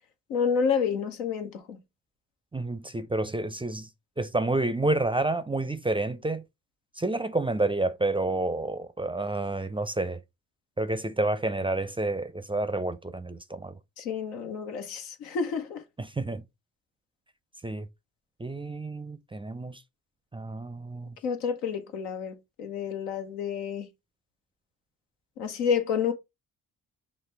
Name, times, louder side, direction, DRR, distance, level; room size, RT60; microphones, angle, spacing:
voice 1, 0.3-1.8 14.0-15.8 21.2-23.9 25.4-26.1, left 6 dB, 90° left, 0.8 m, -29 dB
voice 2, 2.5-3.9 4.2-6.4 7.0-10.2 10.8-13.7 16.0-16.4 17.6-17.9 18.4-19.8 20.3-21.2, right 2 dB, 10° right, 0.4 m, -29 dB
5.9 x 2.1 x 3.3 m
hypercardioid pair, 40°, 45 cm